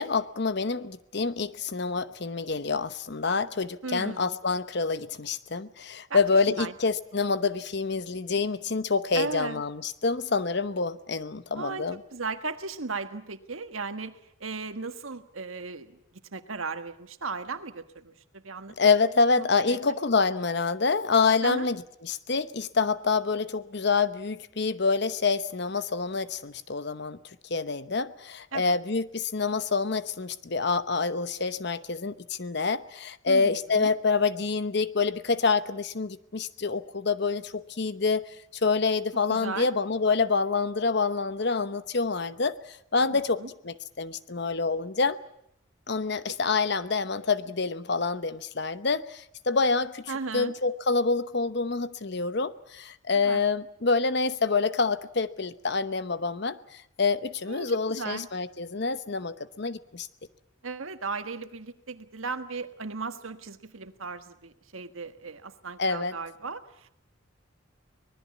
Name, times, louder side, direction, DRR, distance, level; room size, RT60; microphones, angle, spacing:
voice 1, 0.0-12.0 18.8-27.2 27.5-38.3 38.6-42.6 42.9-45.2 45.9-56.6 57.0-60.1 65.8-66.1, left 4 dB, 55° left, 13 dB, 0.9 m, -27 dB
voice 2, 3.8-4.4 6.1-6.2 6.5-6.7 9.1-9.6 11.5-16.0 16.3-18.7 19.4-19.8 21.4-21.7 28.5-28.8 33.3-33.9 39.3-39.7 43.0-43.5 46.3-46.4 50.1-50.5 53.1-53.4 57.5-58.3 60.6-66.9, right 4 dB, 85° right, 9 dB, 1.5 m, -36 dB
24.5 x 20.0 x 8.4 m, 0.73 s
head